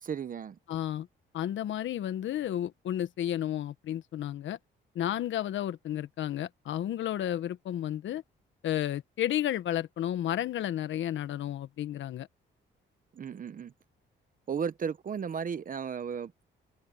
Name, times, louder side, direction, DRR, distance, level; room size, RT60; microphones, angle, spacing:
voice 1, 0.0-0.6 13.1-13.7 14.5-16.4, right 7 dB, 45° right, 1.0 m, -35 dB
voice 2, 0.7-1.1 1.3-4.6 4.9-8.2 8.6-12.3, left 11 dB, 70° left, 1.3 m, -32 dB
cardioid pair, 90°, 20 cm